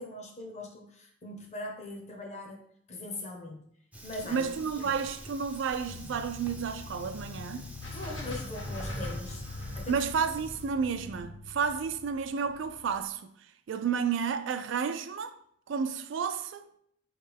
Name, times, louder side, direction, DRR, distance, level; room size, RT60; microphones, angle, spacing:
voice 1, 0.0-3.6 4.0-4.5 4.8-5.0 7.9-9.4 9.7-10.0, left 2 dB, 35° left, 0.7 m, -41 dB
Fire, 3.9-10.7, right 1 dB, 5° right, 0.4 m, -47 dB
voice 2, 4.2-7.7 9.9-13.3 13.7-15.4 15.7-16.7, right 6 dB, 65° right, 0.3 m, -31 dB
sound 1, 5.8-13.1, left 6 dB, 90° left, 0.4 m, -47 dB
sound 2, 7.8-12.0, equal, 65° left, 1.1 m, -40 dB
4.5 x 3.2 x 3.4 m
head